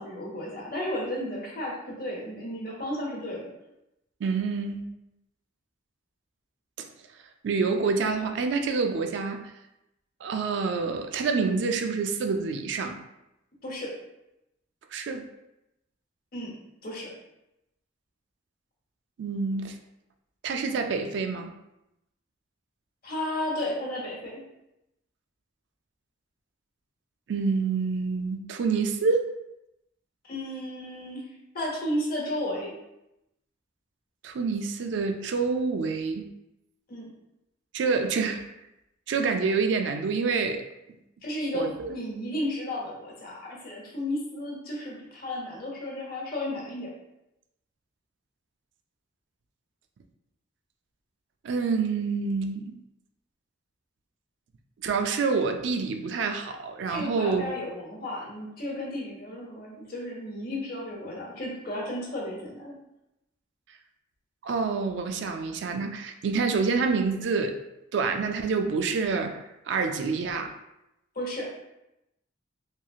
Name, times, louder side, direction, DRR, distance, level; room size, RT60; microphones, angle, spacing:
voice 1, 0.0-3.5 13.6-13.9 16.3-16.5 16.8-17.1 23.0-24.4 30.2-31.2 31.5-32.7 36.9-37.1 41.2-46.9 56.9-62.7 71.1-71.5, left 1 dB, 50° left, -3 dB, 0.9 m, -33 dB
voice 2, 4.2-4.9 6.8-6.9 7.4-9.5 10.2-13.0 14.9-15.3 19.2-19.8 20.4-21.5 27.3-29.3 34.2-36.3 37.7-38.4 39.1-40.6 41.5-41.9 51.4-52.8 54.8-57.5 64.4-67.6 67.9-70.5, right 4 dB, 65° right, 6 dB, 0.3 m, -27 dB
3.0 x 2.7 x 2.3 m, 0.88 s
head